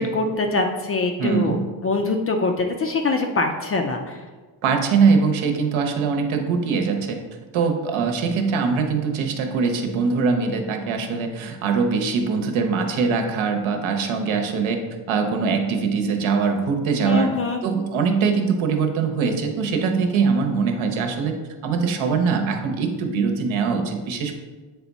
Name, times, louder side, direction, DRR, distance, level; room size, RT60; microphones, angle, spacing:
voice 1, 0.0-1.6 1.8-4.2 17.0-17.6, left 3 dB, 30° left, 4 dB, 0.4 m, -23 dB
voice 2, 1.2-1.6 4.6-7.2 7.5-14.8 15.1-17.3 17.6-21.3 21.6-24.4, right 5 dB, 75° right, 4 dB, 1.0 m, -22 dB
8.2 x 3.5 x 4.1 m, 1.3 s
cardioid pair, 165°, 48 cm